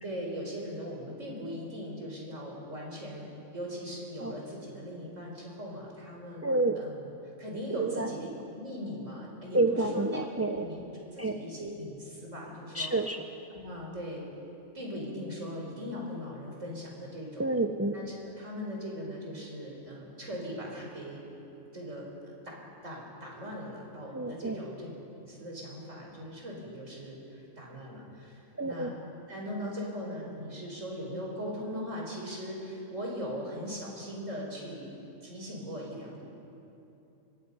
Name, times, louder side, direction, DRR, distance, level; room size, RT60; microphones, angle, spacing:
voice 1, 0.0-6.4 6.8-7.1 7.4-8.3 8.5-10.8 11.1-12.9 13.5-14.2 14.7-17.4 17.9-21.2 21.7-28.9 29.3-34.9 35.2-36.2, equal, 65° right, -2 dB, 5.2 m, -39 dB
voice 2, 6.4-6.8 7.8-8.1 9.5-10.7 11.2-11.3 12.7-13.2 17.4-18.0 24.1-24.6 28.6-28.9, right 2 dB, 20° right, 5 dB, 0.4 m, -28 dB
25.5 x 23.5 x 5.5 m, 2.8 s
omnidirectional pair, 1.4 m